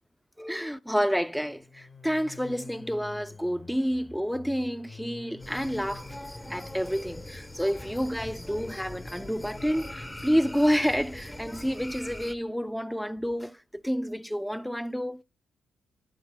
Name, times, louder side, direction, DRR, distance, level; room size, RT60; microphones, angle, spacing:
voice 1, 0.4-6.1 6.5-15.2, equal, ahead, 0.6 m, -29 dB
sound 1, 1.4-11.4, left 3 dB, 45° left, 2.8 m, -48 dB
sound 2, 5.4-12.3, left 1 dB, 15° left, 1.1 m, -42 dB
20.0 x 7.3 x 2.2 m
supercardioid pair, 55°, 0 cm